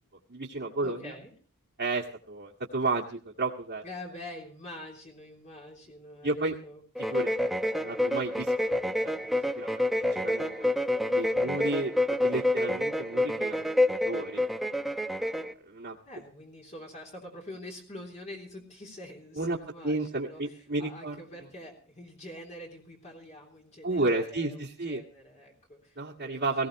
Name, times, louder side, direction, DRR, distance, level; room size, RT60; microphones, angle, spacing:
voice 1, 0.3-1.1 1.8-3.8 6.2-6.6 7.0-9.1 9.6-10.7 11.1-11.9 12.2-13.6 14.0-14.4 15.6-16.0 19.4-19.6 19.8-21.2 23.8-25.0 26.0-26.7, right 2 dB, 50° right, -3 dB, 1.9 m, -32 dB
voice 2, 0.8-1.3 3.8-6.8 11.4-11.7 15.4-15.5 16.0-26.4, left 1 dB, 30° left, -1 dB, 3.4 m, -46 dB
sound 1, 7.0-15.5, left 1 dB, ahead, 0.8 m, -28 dB
18.5 x 16.5 x 3.1 m, 0.41 s
head